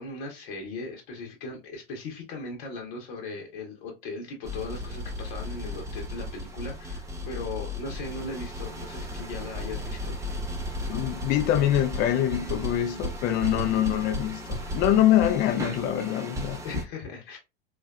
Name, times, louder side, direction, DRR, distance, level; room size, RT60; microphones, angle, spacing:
voice 1, 0.0-10.2 13.6-13.8 16.6-17.4, left 3 dB, 55° left, 0.9 m, -38 dB
sound 1, 4.4-16.8, left 1 dB, 10° right, 0.7 m, -35 dB
voice 2, 10.9-16.6, left 12 dB, 30° left, 0.4 m, -24 dB
3.1 x 2.3 x 2.3 m
hypercardioid pair, 90°, 31 cm